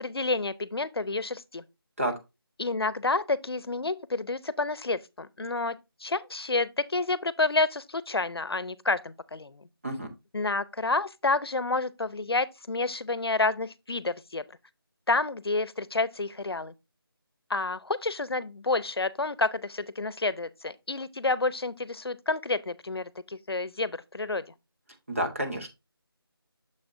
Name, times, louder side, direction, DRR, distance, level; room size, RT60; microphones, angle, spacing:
voice 1, 0.0-1.6 2.6-9.6 10.3-14.4 15.1-16.7 17.5-24.4, left 3 dB, 75° left, 0.7 m, -29 dB
voice 2, 25.1-25.7, right 1 dB, 35° right, 1.3 m, -29 dB
6.9 x 6.5 x 2.6 m
figure-of-eight pair, 180°, 13 cm